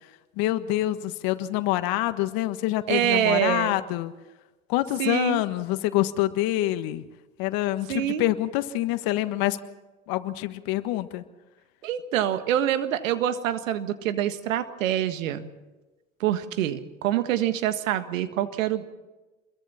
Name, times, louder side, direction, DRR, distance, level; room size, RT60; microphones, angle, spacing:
voice 1, 0.4-4.1 4.7-7.0 7.4-9.6 10.1-11.2, left 15 dB, 65° left, 10 dB, 1.5 m, -26 dB
voice 2, 2.9-3.8 5.0-5.4 7.9-8.2 11.8-15.5 16.2-18.8, right 11 dB, 80° right, 10 dB, 1.6 m, -26 dB
27.5 x 22.5 x 4.3 m, 1.1 s
hypercardioid pair, 70°, 39 cm